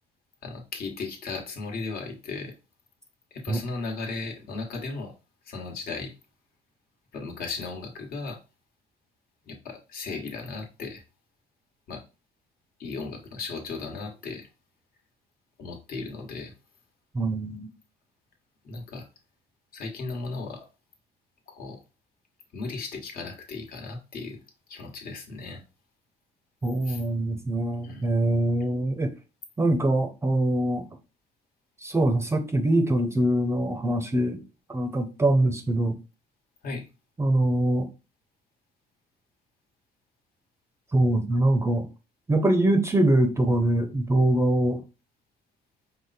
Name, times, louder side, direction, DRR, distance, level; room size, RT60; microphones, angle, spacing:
voice 1, 0.4-2.5 3.3-5.1 5.4-6.1 7.1-8.4 9.5-11.0 11.9-12.0 12.8-14.5 15.6-16.5 18.6-19.1 19.7-20.7 21.5-21.8 22.5-24.4 24.7-25.6 26.8-27.0 27.8-28.1 36.6-36.9, left 3 dB, 60° left, 1.4 m, -36 dB
voice 2, 17.1-17.7 26.6-29.1 29.6-30.9 31.8-34.4 34.7-35.9 37.2-37.9 40.9-41.9 42.3-44.8, right 1 dB, 15° right, 0.6 m, -23 dB
4.9 x 2.1 x 4.1 m
cardioid pair, 110°, 17 cm